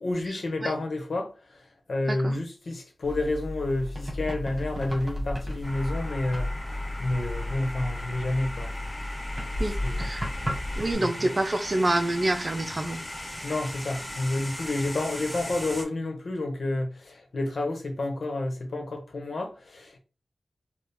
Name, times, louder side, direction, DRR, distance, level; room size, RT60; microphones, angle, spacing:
voice 1, 0.0-1.6 1.9-6.5 7.0-8.7 9.8-10.0 10.3-10.4 11.0-11.1 13.4-20.0, left 2 dB, 70° left, 1.2 m, -30 dB
sound 1, 3.0-10.9, left 1 dB, 20° right, 1.5 m, -33 dB
sound 2, 5.6-15.8, left 1 dB, 15° left, 1.7 m, -38 dB
voice 2, 9.6-10.2 10.8-13.0, right 1 dB, 35° right, 0.6 m, -27 dB
4.3 x 2.4 x 3.5 m
wide cardioid pair, 75°, 0 cm